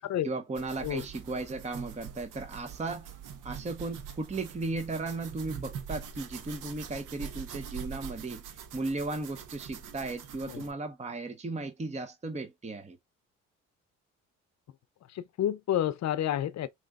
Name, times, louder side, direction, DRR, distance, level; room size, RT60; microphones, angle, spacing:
voice 1, 0.2-3.1 3.4-13.0, right 3 dB, 20° right, 0.8 m, -36 dB
sound 1, 0.5-10.7, right 7 dB, 65° right, 0.9 m, -43 dB
voice 2, 15.1-16.7, left 11 dB, 55° left, 0.7 m, -30 dB
6.0 x 3.0 x 2.3 m
supercardioid pair, 70°, 33 cm